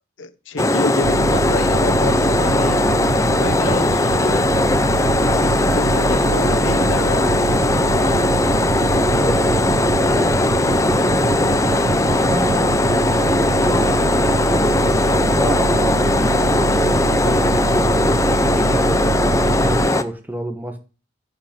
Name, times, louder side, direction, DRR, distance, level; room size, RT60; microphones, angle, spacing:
voice 1, 0.2-2.9 3.3-4.5 5.2-8.2 17.4-17.5, left 3 dB, 90° left, 0.9 m, -29 dB
sound 1, 0.6-20.0, left 2 dB, 15° left, 0.5 m, -18 dB
sound 2, 1.0-19.9, right 4 dB, 90° right, 0.5 m, -25 dB
voice 2, 8.8-11.5 11.9-14.6 15.0-18.2 18.5-20.8, right 1 dB, 10° right, 1.1 m, -29 dB
9.6 x 4.9 x 7.6 m
head